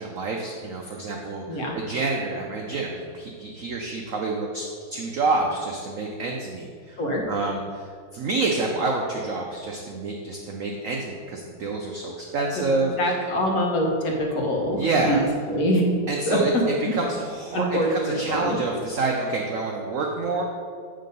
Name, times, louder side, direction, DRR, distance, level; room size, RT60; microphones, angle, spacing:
voice 1, 0.0-4.6 4.9-7.0 7.3-7.8 8.1-12.9 14.8-15.2 16.1-16.5 16.9-20.4, right 3 dB, 70° right, 0 dB, 0.7 m, -28 dB
voice 2, 13.0-15.9 16.3-16.4 16.8-16.9 17.5-18.6, equal, 55° left, -1 dB, 1.4 m, -24 dB
7.7 x 3.7 x 5.2 m, 2.1 s
omnidirectional pair, 2.1 m